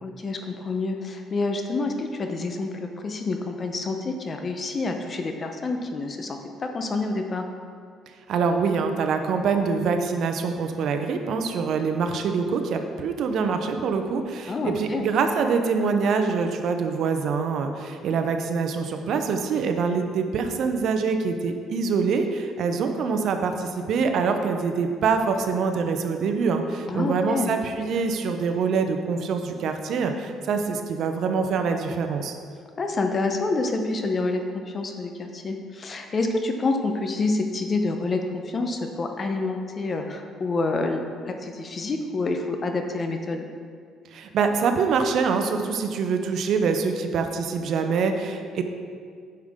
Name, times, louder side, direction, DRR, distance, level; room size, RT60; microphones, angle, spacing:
voice 1, 0.0-7.4 14.5-15.0 26.9-27.5 32.8-43.4, left 3 dB, 35° left, 5 dB, 0.9 m, -28 dB
voice 2, 8.3-32.4 44.1-48.6, right 5 dB, 65° right, 6 dB, 0.7 m, -25 dB
9.2 x 6.6 x 3.7 m, 2.1 s
cardioid pair, 100°, 0 cm